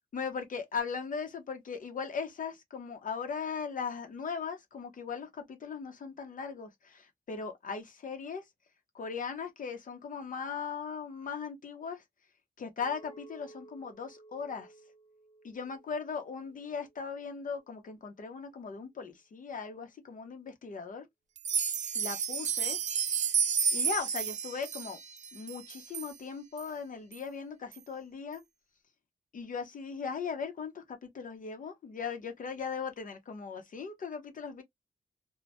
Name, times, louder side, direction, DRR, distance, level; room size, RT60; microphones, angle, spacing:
voice 1, 0.1-8.4 8.9-12.0 12.6-14.7 15.4-21.0 21.9-22.8 23.7-25.0 25.3-28.4 29.3-34.6, left 5 dB, 60° left, 0.7 m, -38 dB
Chink clink, 12.8-17.1 17.6-18.0, right 2 dB, 20° left, 0.8 m, -56 dB
sound 1, 21.4-26.1 26.6-26.7 27.1-27.2 27.7-27.8, right 7 dB, 50° right, 0.4 m, -31 dB
2.1 x 2.1 x 2.7 m
wide cardioid pair, 100°, 15 cm